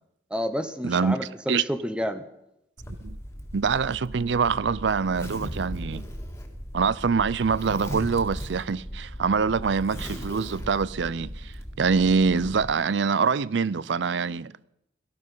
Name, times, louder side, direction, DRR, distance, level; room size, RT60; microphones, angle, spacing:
voice 1, 0.3-2.2, equal, 5° right, 0.8 m, -30 dB
voice 2, 0.8-1.2 1.5-1.6 3.0-3.2 3.5-6.1 6.7-14.6, right 5 dB, 65° right, 0.5 m, -25 dB
Zipper (clothing), 2.8-12.7, equal, 15° left, 1.9 m, -37 dB
17.5 x 14.0 x 5.6 m
head